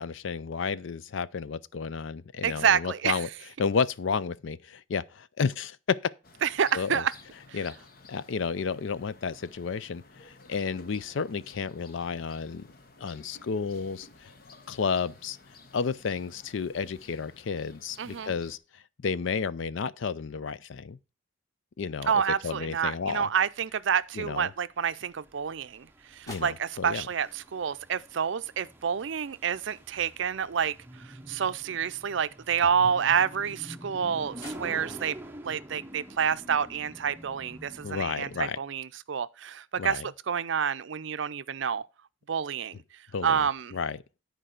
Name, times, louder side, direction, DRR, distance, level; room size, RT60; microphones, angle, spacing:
voice 1, 0.0-3.3 3.6-6.0 6.7-7.0 7.5-7.7 8.1-12.7 13.0-14.3 14.7-15.4 15.7-18.6 19.0-21.0 21.8-22.1 22.4-23.3 24.2-24.5 26.3-27.0 37.8-38.6 39.8-40.1 43.1-43.4 43.7-44.0, left 5 dB, 75° left, 0.5 m, -31 dB
voice 2, 2.4-3.2 6.4-7.1 7.5-7.6 18.0-18.3 22.1-30.8 31.0-35.2 35.4-41.8 42.3-42.8 43.2-43.8, right 7 dB, 70° right, 0.5 m, -28 dB
sound 1, 6.2-18.6, left 3 dB, 45° left, 1.0 m, -54 dB
sound 2, 22.6-38.4, right 1 dB, 10° right, 0.7 m, -47 dB
sound 3, 37.7-37.8, equal, 15° left, 4.1 m, -56 dB
10.0 x 4.6 x 6.5 m
head